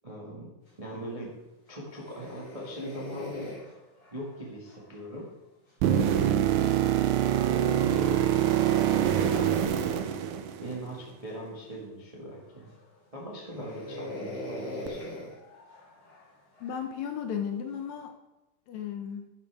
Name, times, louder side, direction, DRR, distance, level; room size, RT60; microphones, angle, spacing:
voice 1, 0.0-0.5 0.8-1.3 1.7-3.5 4.1-5.3 5.9-6.4 7.2-10.0 10.6-12.7 13.1-15.2, right 1 dB, 60° right, -4 dB, 0.3 m, -40 dB
sound 1, 1.8-5.2 7.5-9.5 10.6-11.1 11.7-11.8 12.4-12.9 13.4-16.9 17.7-18.1, left 1 dB, 30° left, 3.0 m, -41 dB
sound 2, 5.8-10.9 14.9-15.0, right 11 dB, 80° right, 2.2 m, -25 dB
voice 2, 16.6-18.1 18.7-19.3, left 8 dB, 75° left, 6 dB, 1.7 m, -34 dB
11.5 x 7.2 x 3.4 m, 1.0 s
omnidirectional pair, 3.7 m